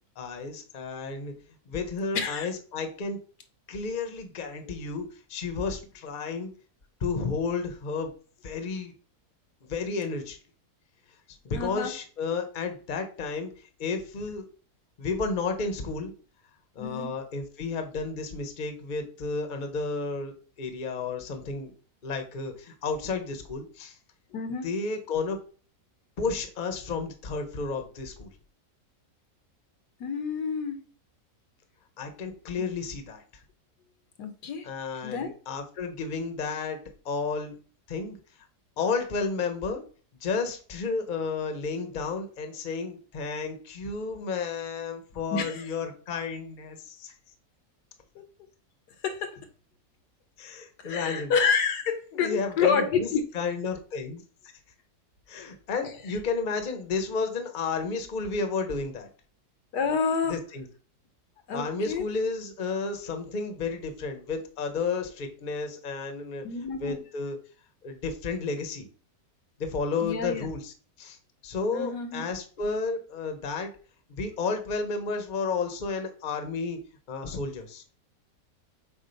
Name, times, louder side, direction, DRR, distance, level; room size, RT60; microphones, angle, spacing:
voice 1, 0.2-1.3 1.7-3.2 3.7-6.5 7.0-8.1 8.4-8.9 9.6-10.4 11.4-14.5 15.0-16.1 16.7-21.7 22.0-24.0 24.6-25.4 26.2-28.3 32.0-33.2 34.6-36.8 37.0-37.5 37.9-38.2 38.8-39.8 40.2-47.1 50.4-51.3 52.1-53.1 53.3-54.2 55.3-59.1 60.3-60.6 61.5-66.4 66.8-67.4 67.8-68.8 69.6-71.2 71.4-73.7 74.1-76.8 77.1-77.8, left 4 dB, 35° left, 6 dB, 0.9 m, -32 dB
voice 2, 2.1-2.5 4.7-4.8 11.5-11.9 16.8-17.1 24.3-24.7 30.0-30.8 34.2-34.7 35.0-35.3 45.3-45.6 48.1-48.2 49.0-49.5 50.8-53.2 59.7-60.4 61.5-62.0 66.4-67.0 70.0-70.5 71.7-72.2, left 5 dB, 85° left, 8 dB, 1.5 m, -28 dB
7.2 x 2.5 x 5.2 m, 0.40 s
omnidirectional pair, 1.7 m